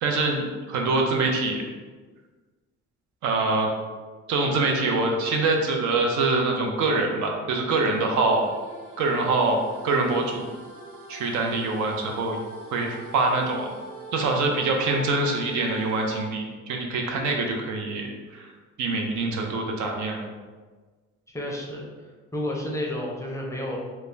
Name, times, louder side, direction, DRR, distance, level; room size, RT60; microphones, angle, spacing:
voice 1, 0.0-1.6 3.2-3.7 4.3-8.4 9.0-10.5 11.1-12.4 12.7-13.7 14.1-18.5 18.8-20.2, right 3 dB, 75° right, 2 dB, 0.5 m, -24 dB
sound 1, 7.7-16.3, right 2 dB, 45° right, 0.8 m, -43 dB
voice 2, 21.3-21.9 22.3-23.8, left 1 dB, 10° left, -3 dB, 0.5 m, -30 dB
2.3 x 2.1 x 3.1 m, 1.4 s
cardioid pair, 90°, 30 cm